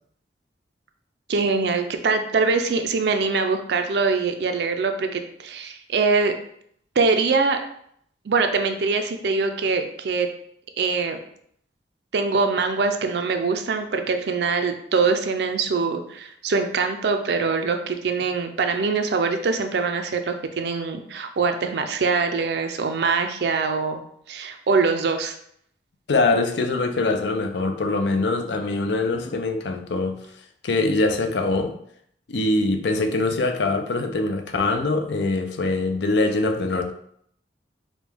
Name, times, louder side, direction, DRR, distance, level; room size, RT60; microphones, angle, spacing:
voice 1, 1.3-6.3 7.0-7.6 8.3-10.3 10.8-11.2 12.1-24.0 24.3-25.3, right 4 dB, 65° right, 6 dB, 0.4 m, -23 dB
voice 2, 26.1-30.2 30.6-31.7 32.3-36.9, left 2 dB, 80° left, 5 dB, 0.5 m, -23 dB
5.0 x 2.2 x 3.4 m, 0.68 s
head